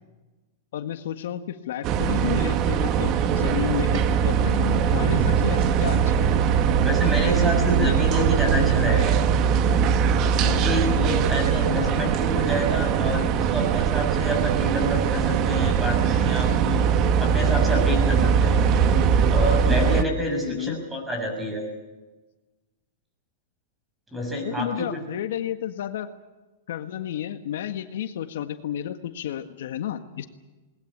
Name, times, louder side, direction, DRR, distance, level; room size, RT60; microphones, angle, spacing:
voice 1, 0.7-6.3 11.8-12.1 20.4-20.8 24.4-26.1 26.7-30.3, left 11 dB, 75° left, 8 dB, 1.6 m, -31 dB
sound 1, 1.8-20.0, right 7 dB, 35° right, 1.3 m, -21 dB
voice 2, 6.8-9.2 10.4-16.8 17.2-18.6 19.3-21.7 24.1-24.9, equal, 10° right, 3 dB, 6.5 m, -28 dB
20.5 x 20.0 x 8.7 m, 1.2 s
supercardioid pair, 145°, 0 cm